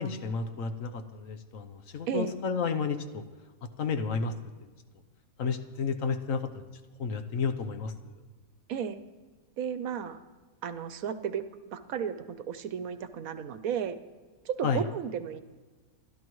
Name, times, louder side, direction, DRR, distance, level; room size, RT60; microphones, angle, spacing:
voice 1, 0.0-3.2 3.6-4.3 5.4-6.6 7.0-8.1 14.6-14.8, left 5 dB, 70° left, 8 dB, 1.3 m, -31 dB
voice 2, 8.7-9.0 9.6-10.2 10.6-11.4 11.7-14.0 14.4-15.4, right 8 dB, 75° right, 11 dB, 1.2 m, -33 dB
28.5 x 12.0 x 3.1 m, 1.3 s
omnidirectional pair, 1.5 m